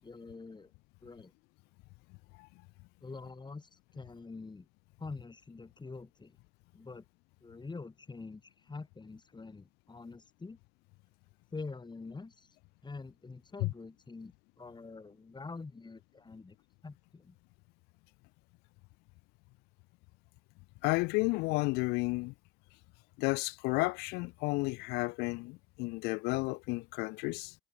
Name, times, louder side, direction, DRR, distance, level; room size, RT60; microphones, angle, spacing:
voice 1, 0.0-0.7 1.0-1.3 3.0-4.7 5.0-6.4 6.7-7.0 7.4-10.6 11.5-12.6 12.8-16.6 16.8-17.3, left 3 dB, 25° left, 6.0 m, -46 dB
voice 2, 20.8-22.3 23.2-27.5, left 25 dB, 75° left, 2.0 m, -32 dB
hypercardioid pair, 55°, 17 cm